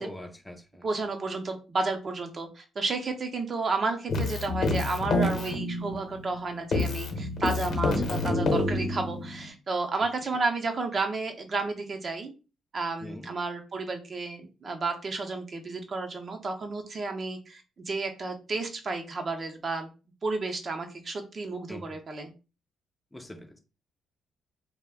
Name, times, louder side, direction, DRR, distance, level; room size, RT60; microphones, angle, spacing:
voice 1, 0.0-0.9 13.0-13.3 21.7-22.0 23.1-23.6, left 1 dB, 15° left, 0.4 m, -43 dB
voice 2, 0.8-12.3 12.7-19.9 20.2-22.3, right 3 dB, 40° right, 0.6 m, -32 dB
Keyboard (musical), 4.1-6.4 6.7-9.5, left 2 dB, 60° left, 0.8 m, -28 dB
2.4 x 2.1 x 3.4 m
cardioid pair, 90°, 0 cm